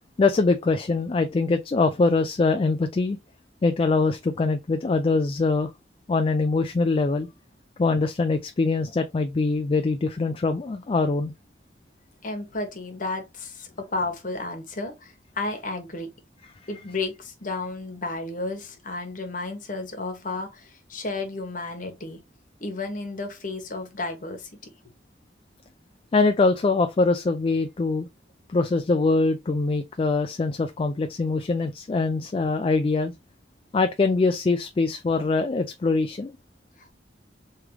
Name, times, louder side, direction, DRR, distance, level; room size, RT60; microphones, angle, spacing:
voice 1, 0.2-3.2 3.6-5.7 6.1-7.3 7.8-11.3 26.1-28.1 28.5-33.1 33.7-36.4, left 3 dB, 30° left, 0.3 m, -23 dB
voice 2, 12.2-16.1 16.7-22.2 22.6-24.5 36.8-36.9, left 2 dB, 45° left, 1.2 m, -32 dB
3.5 x 3.3 x 3.1 m
head